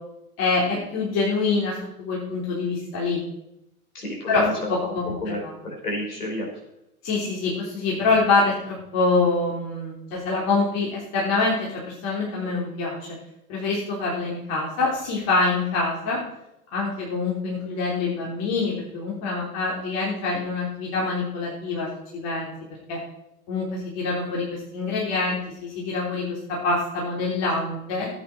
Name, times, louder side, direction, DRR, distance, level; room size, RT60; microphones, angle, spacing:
voice 1, 0.4-3.2 4.3-5.5 7.0-13.1 13.5-16.2 16.7-22.5 22.9-23.0 23.5-28.1, left 3 dB, 35° left, -4 dB, 3.6 m, -25 dB
voice 2, 3.9-6.5, left 1 dB, 75° left, 0 dB, 5.3 m, -31 dB
16.5 x 9.1 x 4.5 m, 0.83 s
figure-of-eight pair, 100°, 45 cm